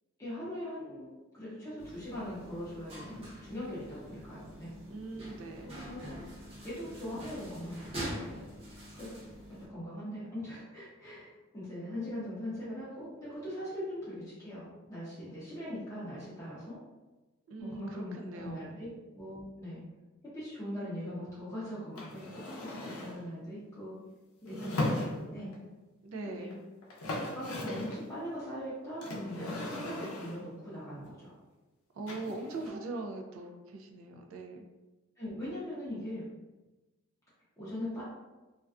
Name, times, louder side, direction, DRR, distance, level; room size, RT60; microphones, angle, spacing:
voice 1, 0.2-4.7 5.6-6.1 6.6-8.4 8.9-9.1 9.5-16.8 17.6-19.8 20.3-24.0 24.4-25.5 26.2-26.5 27.2-31.3 32.4-32.8 35.2-36.2 37.6-38.0, equal, 15° left, -10 dB, 0.6 m, -41 dB
sound 1, 1.8-9.7, right 1 dB, 25° right, 0.7 m, -45 dB
voice 2, 4.9-5.7 17.5-18.8 24.5-25.3 26.0-26.6 31.9-34.7, right 2 dB, 65° right, 4 dB, 0.4 m, -41 dB
sound 2, 22.0-23.2 24.5-25.6 26.5-26.6 26.8-28.0 29.0-30.5 32.1-32.7, left 1 dB, 80° left, 0.5 m, -37 dB
2.4 x 2.2 x 2.3 m, 1.1 s
head